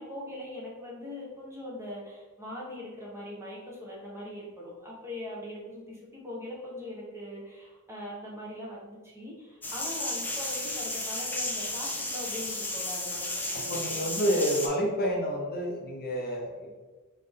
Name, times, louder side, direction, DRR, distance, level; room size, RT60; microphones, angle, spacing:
voice 1, 0.0-14.4, left 1 dB, 10° right, -5 dB, 1.1 m, -41 dB
sound 1, 9.6-14.7, left 1 dB, 10° left, 0.6 m, -33 dB
voice 2, 13.5-16.7, equal, 45° left, 0 dB, 0.8 m, -29 dB
3.7 x 3.7 x 3.6 m, 1.3 s
head